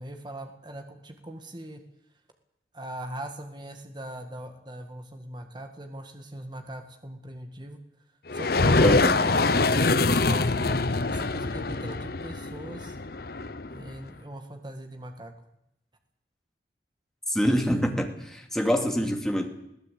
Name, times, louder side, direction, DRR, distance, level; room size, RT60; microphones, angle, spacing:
voice 1, 0.0-1.8 2.7-7.8 8.3-13.0 13.7-15.3, right 1 dB, 25° right, 6 dB, 1.8 m, -40 dB
sound 1, 8.3-14.0, left 3 dB, 55° left, 0.9 m, -24 dB
voice 2, 8.8-9.2 17.3-19.5, equal, 5° left, 3 dB, 2.5 m, -25 dB
21.0 x 16.0 x 8.4 m, 0.82 s
head